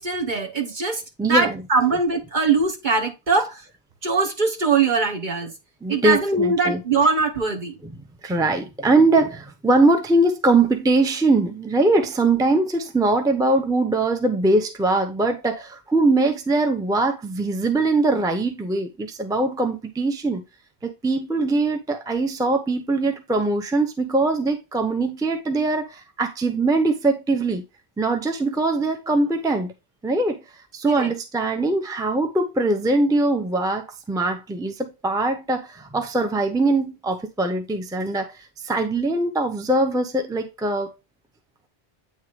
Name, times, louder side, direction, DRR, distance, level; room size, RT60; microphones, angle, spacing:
voice 1, 0.0-3.6 4.0-5.5 5.9-7.8 30.8-31.1, right 4 dB, 50° right, 1.4 m, -22 dB
voice 2, 1.2-1.6 5.8-6.8 7.8-7.9 8.2-20.4 20.8-27.6 28.0-29.7 30.0-30.4 30.7-40.9, right 2 dB, 5° right, 0.7 m, -22 dB
8.8 x 3.7 x 3.2 m
omnidirectional pair, 1.1 m